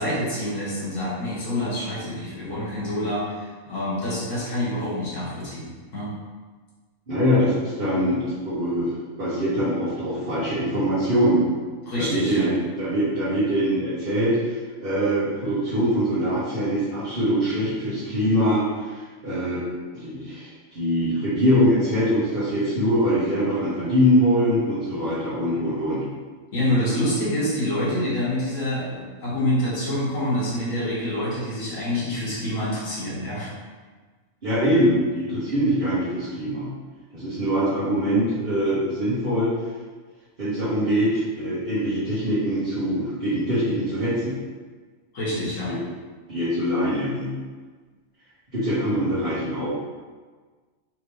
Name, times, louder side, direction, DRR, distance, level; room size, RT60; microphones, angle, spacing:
voice 1, 0.0-5.7 5.9-6.1 11.9-12.5 26.5-33.5 45.1-45.7, left 1 dB, 80° left, -9 dB, 1.8 m, -26 dB
voice 2, 7.1-8.9 9.2-11.4 12.0-12.5 12.8-19.6 19.9-20.5 20.7-26.0 34.4-36.7 37.1-39.5 40.4-44.4 45.7-45.8 46.3-47.3 48.5-49.7, equal, 45° right, -14 dB, 1.5 m, -23 dB
4.4 x 3.3 x 3.2 m, 1.4 s
omnidirectional pair, 1.4 m